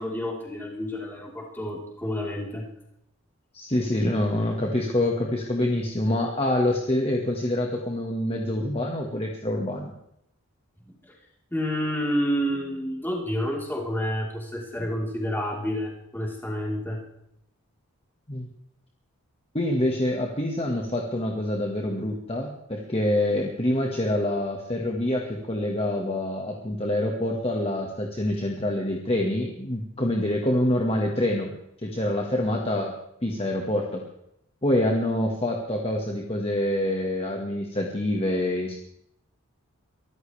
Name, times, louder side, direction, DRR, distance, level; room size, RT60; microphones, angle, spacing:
voice 1, 0.0-2.7 10.9-11.1 11.5-17.0, equal, 10° left, -3 dB, 3.9 m, -29 dB
voice 2, 3.5-9.9 18.3-18.5 19.5-31.5 31.8-32.9 33.2-34.0 34.6-38.7, left 1 dB, 25° left, 0 dB, 1.6 m, -26 dB
23.5 x 14.0 x 3.4 m, 0.78 s
head